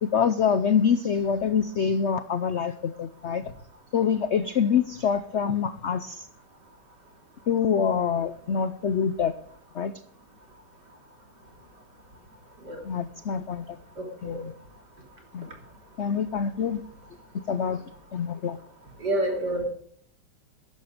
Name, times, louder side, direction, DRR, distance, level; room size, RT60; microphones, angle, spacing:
voice 1, 0.0-3.4 3.9-6.3 7.5-9.3 9.7-9.9 12.8-13.8 14.2-14.5 15.3-15.5 16.0-16.8 17.5-17.8 18.1-18.6, left 7 dB, 90° left, 13 dB, 0.6 m, -25 dB
voice 2, 14.0-14.4 19.0-19.6, right 1 dB, 60° right, 2 dB, 3.6 m, -28 dB
14.0 x 11.0 x 5.0 m, 0.63 s
omnidirectional pair, 2.1 m